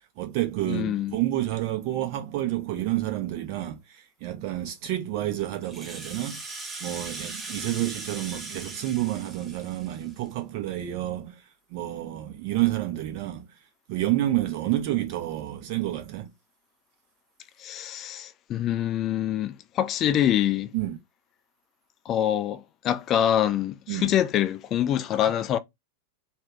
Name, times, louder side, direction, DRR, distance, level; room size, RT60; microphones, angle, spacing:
voice 1, 0.2-6.4 6.8-11.4 11.7-13.5 13.9-16.3 20.7-21.0 23.9-24.1, right 14 dB, 45° right, 1.0 m, -29 dB
voice 2, 0.7-1.2 17.6-20.7 22.1-25.6, left 11 dB, 30° left, 0.3 m, -25 dB
Rattle (instrument), 5.5-10.3, right 3 dB, 15° right, 1.0 m, -39 dB
3.5 x 2.3 x 3.1 m
figure-of-eight pair, 90°, 0 cm